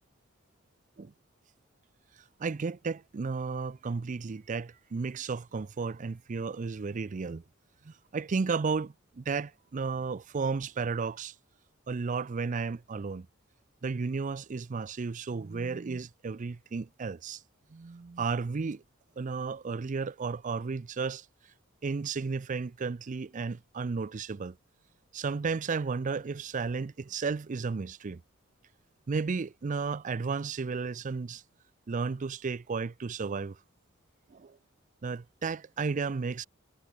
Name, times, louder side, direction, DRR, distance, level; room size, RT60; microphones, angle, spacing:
voice 1, 2.4-7.4 7.8-11.3 11.9-13.3 13.8-17.4 17.7-18.8 19.2-21.3 21.8-24.6 25.1-28.2 29.1-31.4 31.9-33.6 34.3-34.6 35.0-36.5, right 4 dB, 40° right, 0.4 m, -33 dB
head